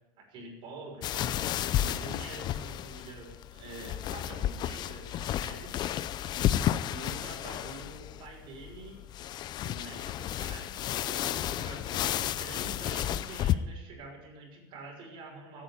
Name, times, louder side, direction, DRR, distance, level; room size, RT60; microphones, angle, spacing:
voice 1, 0.2-1.4 1.8-5.8 6.9-9.0 9.6-15.6, right 2 dB, 45° right, 2 dB, 5.9 m, -46 dB
sound 1, 1.0-13.6, left 12 dB, 40° left, 0.7 m, -32 dB
15.5 x 8.9 x 9.9 m, 0.98 s
supercardioid pair, 130°, 11 cm